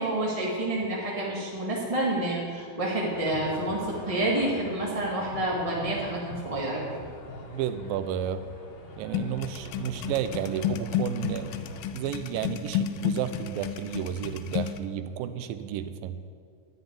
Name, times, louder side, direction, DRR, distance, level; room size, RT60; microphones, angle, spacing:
voice 1, 0.0-6.8, right 1 dB, 20° right, -4 dB, 0.8 m, -28 dB
sound 1, 3.1-11.9, left 1 dB, 55° left, 2.6 m, -43 dB
voice 2, 7.5-8.4 9.0-11.5 11.9-16.2, right 9 dB, 80° right, 11 dB, 2.4 m, -32 dB
sound 2, 9.1-14.8, left 10 dB, 80° left, 1.9 m, -32 dB
11.0 x 8.0 x 9.6 m, 2.2 s
omnidirectional pair, 4.1 m